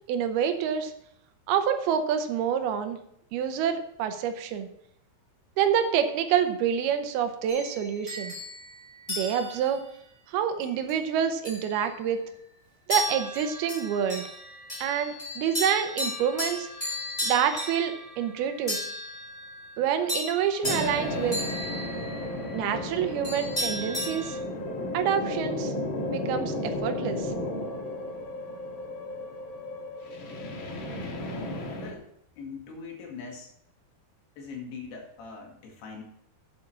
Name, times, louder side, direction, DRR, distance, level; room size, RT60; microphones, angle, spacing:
voice 1, 0.1-0.9 1.5-3.0 3.3-4.7 5.6-8.3 9.1-9.8 10.3-12.2 12.9-14.2 14.8-16.7 17.2-18.8 19.8-21.4 22.5-24.4 24.9-25.7 26.1-27.3, right 8 dB, 80° right, 8 dB, 2.8 m, -27 dB
sound 1, 7.5-9.8 10.6-11.0 11.4-12.3 12.9-24.4, left 1 dB, 10° left, 2.8 m, -35 dB
sound 2, 20.6-31.9, left 1 dB, 55° left, 1.4 m, -34 dB
voice 2, 31.8-32.1 32.4-33.5 34.4-36.0, left 5 dB, 85° left, 1 dB, 4.1 m, -41 dB
8.6 x 7.8 x 5.8 m, 0.73 s
omnidirectional pair, 4.5 m